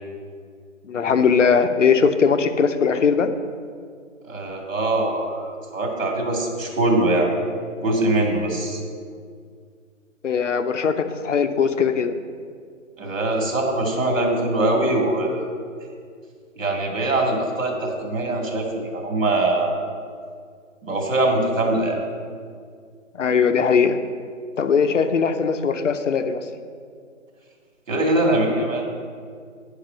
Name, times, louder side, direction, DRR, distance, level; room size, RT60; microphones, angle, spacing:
voice 1, 0.8-3.3 10.2-12.1 23.1-24.0 24.6-26.4, left 6 dB, 65° left, 9 dB, 0.7 m, -20 dB
voice 2, 4.2-7.3 7.8-8.8 13.0-15.5 16.6-19.9 20.8-22.0 27.9-28.8, right 2 dB, 70° right, 1 dB, 2.5 m, -22 dB
10.0 x 4.8 x 6.5 m, 2.1 s
hypercardioid pair, 175°, 40 cm